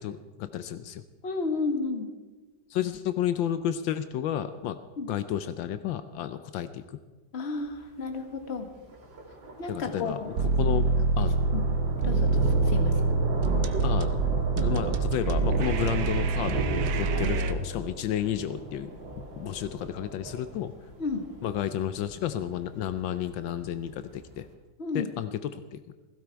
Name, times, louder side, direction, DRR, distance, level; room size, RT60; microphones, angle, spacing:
voice 1, 0.0-1.0 2.7-4.8 5.1-6.8 9.7-10.9 11.2-11.5 13.8-14.2 14.6-16.7 17.0-18.9 19.4-20.7 21.4-24.5 24.9-25.9, left 10 dB, 80° left, 12 dB, 1.4 m, -31 dB
voice 2, 1.2-2.1 5.0-5.1 7.3-8.7 9.6-10.3 11.5-11.6 12.0-12.3 12.6-12.9 17.1-17.3 21.0-21.2 24.8-25.1, left 3 dB, 35° left, 5 dB, 1.6 m, -32 dB
Thunder, 7.5-24.4, right 2 dB, 80° right, 2.8 m, -37 dB
sound 1, 10.4-17.5, right 4 dB, 60° right, 1.2 m, -25 dB
16.0 x 16.0 x 4.6 m, 1.3 s
omnidirectional pair, 2.1 m